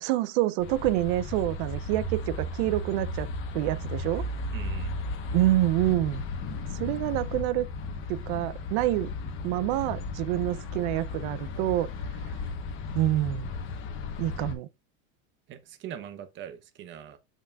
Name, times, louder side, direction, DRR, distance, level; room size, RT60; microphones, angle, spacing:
voice 1, 0.0-4.2 5.3-6.2 6.7-7.7 8.1-9.1 9.4-11.9 12.9-13.5 14.2-14.7, right 15 dB, 60° right, 0.5 m, -27 dB
sound 1, 0.6-14.5, left 5 dB, 35° left, 1.1 m, -36 dB
sound 2, 0.7-9.4, right 6 dB, 85° right, 3.2 m, -39 dB
voice 2, 4.5-4.9 15.5-17.2, right 10 dB, 30° right, 0.8 m, -42 dB
6.6 x 6.0 x 2.3 m
cardioid pair, 160°, 36 cm